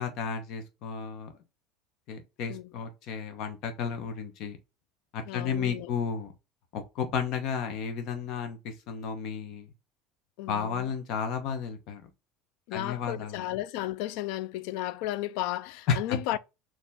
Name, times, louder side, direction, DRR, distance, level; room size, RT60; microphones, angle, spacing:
voice 1, 0.0-1.3 2.1-4.6 5.1-6.3 6.7-9.7 10.5-12.0 12.7-13.4 15.9-16.2, left 6 dB, 55° left, 1.0 m, -33 dB
voice 2, 5.2-5.9 10.4-10.9 12.7-16.4, left 15 dB, 70° left, 0.3 m, -34 dB
4.6 x 2.9 x 3.6 m
cardioid pair, 145°, 0 cm